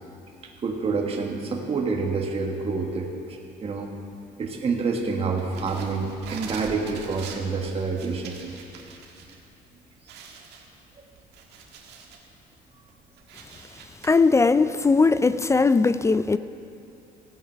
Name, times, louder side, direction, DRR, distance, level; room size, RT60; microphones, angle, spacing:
voice 1, 0.6-3.9 4.4-8.4, right 4 dB, 35° right, 1 dB, 1.5 m, -28 dB
sound 1, 5.4-9.3 9.7-9.8 10.1-12.3 12.7-14.1, right 5 dB, 80° right, 1.6 m, -43 dB
voice 2, 14.0-16.4, left 4 dB, 15° left, 13 dB, 0.3 m, -19 dB
16.0 x 8.9 x 5.6 m, 2.6 s
cardioid pair, 110°, 17 cm